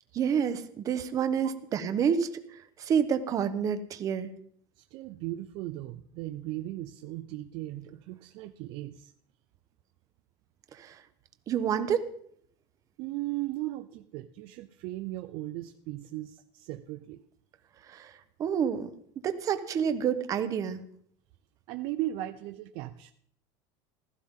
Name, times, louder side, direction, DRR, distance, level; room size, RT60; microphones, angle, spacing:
voice 1, 0.1-4.3 10.7-11.0 11.5-12.0 17.9-18.1 18.4-18.9 19.2-20.8, right 7 dB, 30° right, 10 dB, 1.0 m, -28 dB
voice 2, 4.8-9.1 13.0-17.2 21.7-23.1, right 16 dB, 50° right, 9 dB, 0.5 m, -37 dB
15.5 x 14.5 x 3.7 m, 0.65 s
cardioid pair, 165°, 12 cm